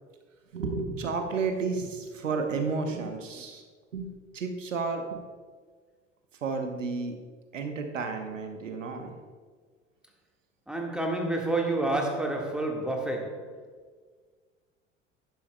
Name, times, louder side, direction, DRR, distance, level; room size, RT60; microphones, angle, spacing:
voice 1, 0.5-3.6 3.9-5.2 6.4-7.2 7.5-9.1, right 4 dB, 80° right, 0.9 m, -32 dB
voice 2, 10.7-13.5, right 2 dB, ahead, 1.6 m, -29 dB
12.0 x 10.5 x 2.2 m
figure-of-eight pair, 65°, 38 cm